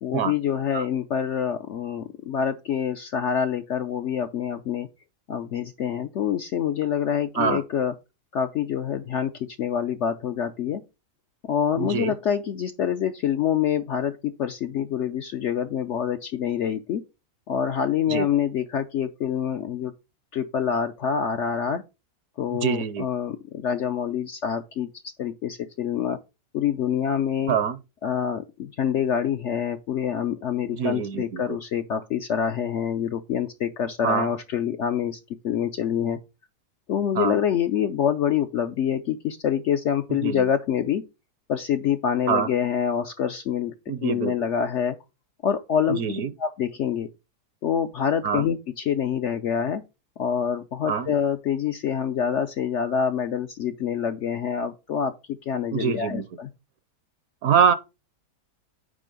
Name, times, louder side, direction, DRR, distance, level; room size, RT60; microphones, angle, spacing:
voice 1, 0.0-4.9 5.3-7.9 8.3-10.8 11.4-17.0 17.5-19.9 20.3-21.8 22.4-24.9 25.2-26.2 26.5-27.6 28.0-36.2 36.9-41.0 41.5-43.7 44.0-44.9 45.4-47.1 47.6-49.8 50.2-55.1 55.5-56.5, left 8 dB, 65° left, 0.7 m, -26 dB
voice 2, 11.8-12.1 18.1-18.3 22.5-23.1 27.5-27.8 30.7-31.4 34.0-34.3 37.2-37.4 40.2-40.4 42.3-42.5 43.9-44.3 46.0-46.3 48.2-48.4 50.9-51.1 55.7-56.2 57.4-57.7, right 7 dB, 65° right, 1.1 m, -24 dB
9.2 x 3.4 x 5.1 m
omnidirectional pair, 1.7 m